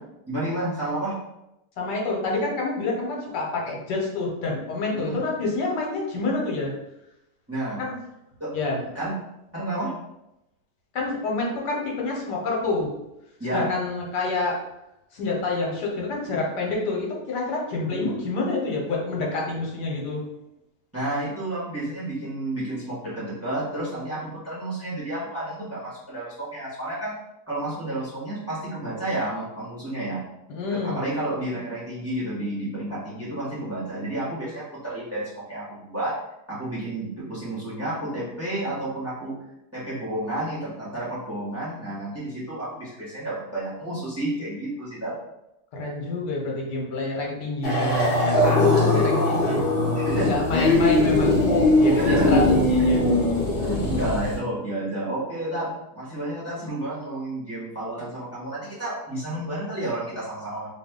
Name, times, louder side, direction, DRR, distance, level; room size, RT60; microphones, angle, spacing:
voice 1, 0.3-1.1 5.1-5.2 7.5-7.8 8.4-8.5 8.9-9.1 9.5-9.9 13.4-13.7 17.8-18.1 20.9-27.1 27.5-30.2 30.7-36.1 36.5-39.3 39.7-45.1 48.6-49.0 49.4-49.5 50.0-50.8 51.8-52.4 53.6-60.7, right 1 dB, 10° right, -8 dB, 1.0 m, -30 dB
voice 2, 1.8-6.7 7.8-8.0 8.5-8.8 10.9-12.9 13.5-14.6 15.1-20.2 30.5-31.0 45.7-48.0 48.4-49.6 50.2-51.4 51.7-53.1, left 3 dB, 80° left, -2 dB, 1.4 m, -28 dB
sound 1, 47.6-54.4, left 2 dB, 45° left, 0.9 m, -20 dB
2.7 x 2.6 x 3.6 m, 0.88 s
omnidirectional pair, 1.8 m